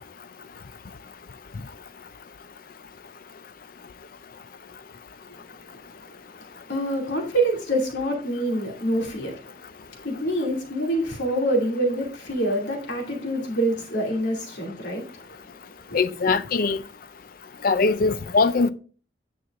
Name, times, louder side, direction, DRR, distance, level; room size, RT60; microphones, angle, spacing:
voice 1, 6.7-9.3 10.0-15.2 15.9-16.0, right 1 dB, 85° left, 2.7 m, -26 dB
voice 2, 15.9-16.8 17.6-18.7, left 4 dB, 55° left, 0.5 m, -21 dB
9.4 x 6.0 x 2.5 m
head